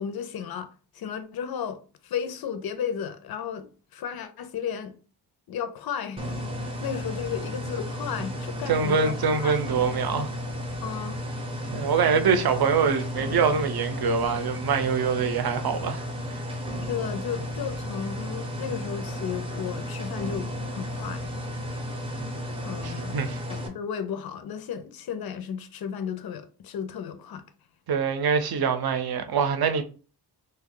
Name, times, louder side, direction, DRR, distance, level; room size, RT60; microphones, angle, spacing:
voice 1, 0.0-3.7 3.9-5.0 5.5-6.2 6.5-9.2 9.4-9.6 10.8-11.2 16.9-21.3 22.6-23.2 23.5-27.4, left 8 dB, 65° left, 0.5 m, -34 dB
sound 1, 6.2-23.7, left 1 dB, 15° right, 0.5 m, -33 dB
voice 2, 8.7-10.3 11.7-16.0 16.3-16.4 22.8-23.4 27.9-29.8, right 6 dB, 65° right, 0.6 m, -24 dB
3.0 x 2.3 x 3.7 m
wide cardioid pair, 170°, 40 cm